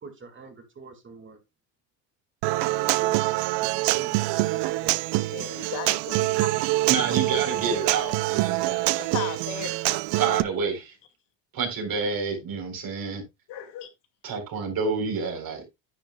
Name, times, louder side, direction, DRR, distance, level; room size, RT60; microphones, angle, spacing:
voice 1, 0.0-1.4 2.6-3.3 3.6-5.8, right 4 dB, 25° right, 2.0 m, -45 dB
Human voice / Acoustic guitar, 2.4-10.4, right 19 dB, 65° right, 0.6 m, -25 dB
voice 2, 5.3-6.5 9.1-9.7 13.5-13.9, left 9 dB, 65° left, 2.3 m, -35 dB
voice 3, 6.6-9.1 10.1-10.9 11.5-13.2 14.2-15.7, right 5 dB, 50° right, 3.9 m, -29 dB
10.0 x 9.1 x 2.3 m
supercardioid pair, 105°, 45 cm